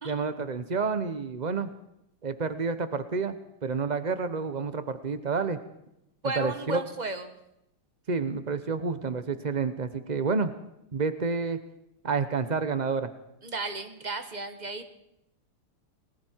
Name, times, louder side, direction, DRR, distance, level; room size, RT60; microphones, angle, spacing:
voice 1, 0.0-1.7 2.2-3.3 3.6-5.6 6.4-6.8 8.1-10.5 10.9-11.6 12.0-13.1, right 4 dB, 80° right, 11 dB, 0.4 m, -29 dB
voice 2, 6.2-7.3 13.4-14.9, right 2 dB, 25° right, 8 dB, 1.2 m, -34 dB
29.0 x 20.0 x 4.6 m, 0.82 s
omnidirectional pair, 2.4 m